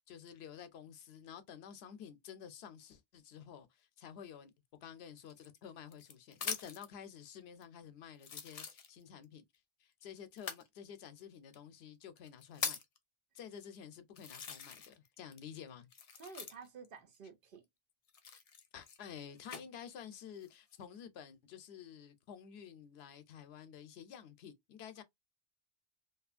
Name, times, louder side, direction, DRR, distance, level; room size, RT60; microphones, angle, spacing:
voice 1, 0.1-4.5 4.8-9.4 9.8-12.8 13.3-15.9 18.7-25.0, left 8 dB, 85° left, 0.8 m, -51 dB
sound 1, 5.3-6.9 7.6-7.7 8.2-9.2 10.3-10.7 11.5-11.6 12.2-13.0 13.6-13.7 14.2-15.1 15.3-16.9 18.1-19.6 20.3-20.8, left 6 dB, 50° left, 0.5 m, -43 dB
voice 2, 16.2-17.6, right 5 dB, 60° right, 0.9 m, -51 dB
2.6 x 2.3 x 2.4 m
omnidirectional pair, 1.0 m